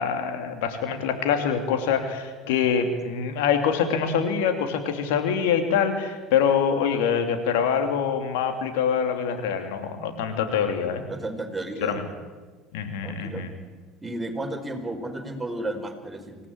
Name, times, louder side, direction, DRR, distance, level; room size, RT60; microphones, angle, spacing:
voice 1, 0.0-11.0 11.8-12.1 12.7-13.5, left 7 dB, 65° left, 6 dB, 2.9 m, -25 dB
voice 2, 11.1-11.9 13.0-13.4 14.0-16.5, right 2 dB, 15° right, 4 dB, 4.7 m, -33 dB
26.0 x 17.5 x 8.9 m, 1.4 s
figure-of-eight pair, 65°, 0 cm